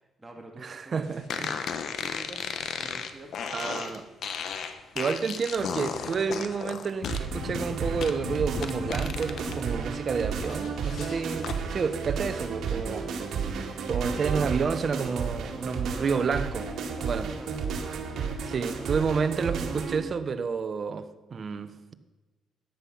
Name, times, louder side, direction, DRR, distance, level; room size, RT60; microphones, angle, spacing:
voice 1, 0.0-1.1 1.4-1.7 2.0-2.5 2.8-4.0 12.9-13.4 17.0-17.7, right 1 dB, 15° right, 2.6 m, -48 dB
voice 2, 0.6-1.5 3.5-4.0 4.9-13.0 13.9-16.7 17.0-17.3 18.4-21.9, right 5 dB, 45° right, 1.0 m, -30 dB
sound 1, 1.3-9.6 10.0-11.6, left 6 dB, 65° left, 1.2 m, -35 dB
sound 2, 7.1-20.0, right 6 dB, 70° right, 2.1 m, -32 dB
13.5 x 10.0 x 5.7 m
cardioid pair, 90°, 0 cm